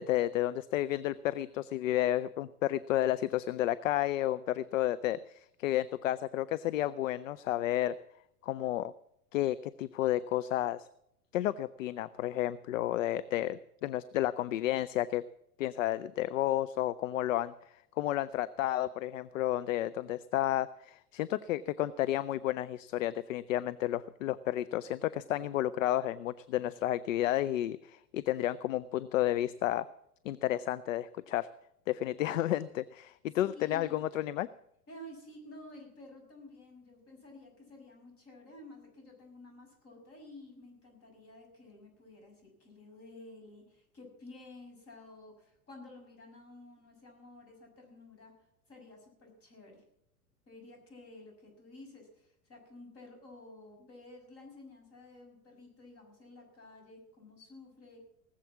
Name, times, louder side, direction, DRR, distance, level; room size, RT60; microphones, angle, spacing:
voice 1, 0.0-7.9 8.4-8.9 9.3-10.9 11.3-15.2 15.6-17.5 18.0-29.8 30.2-31.5 31.9-34.5, left 13 dB, 60° left, 16 dB, 0.6 m, -31 dB
voice 2, 33.2-34.0 34.9-48.3 48.7-49.8 50.5-58.1, left 2 dB, 30° left, 2 dB, 6.4 m, -52 dB
19.0 x 7.6 x 7.2 m, 0.77 s
figure-of-eight pair, 90°, 45 cm